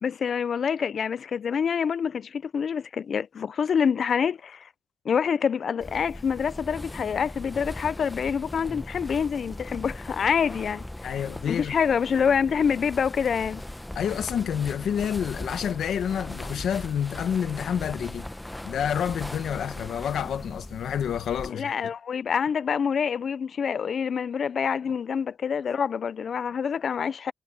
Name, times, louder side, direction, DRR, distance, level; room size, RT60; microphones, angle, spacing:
voice 1, 0.0-4.7 5.0-13.6 21.5-27.3, left 7 dB, 45° left, 0.4 m, -26 dB
sound 1, 5.8-21.5, left 1 dB, 5° left, 0.7 m, -39 dB
voice 2, 11.0-11.7 13.9-18.3 18.6-21.9, left 8 dB, 75° left, 1.1 m, -29 dB
wide cardioid pair, 170°, 0 cm